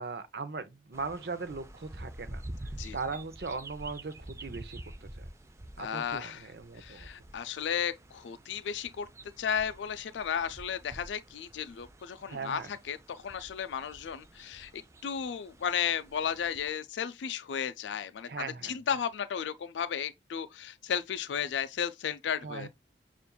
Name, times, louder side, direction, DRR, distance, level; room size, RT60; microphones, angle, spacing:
voice 1, 0.0-2.4 2.9-5.2 5.8-7.1 12.3-12.7 18.3-18.8 22.4-22.7, right 4 dB, 65° right, 0.6 m, -39 dB
sound 1, 0.9-16.7, right 1 dB, 15° right, 0.3 m, -48 dB
voice 2, 5.8-6.5 6.7-9.1 9.4-22.7, left 8 dB, 90° left, 0.4 m, -34 dB
6.8 x 2.5 x 2.2 m
head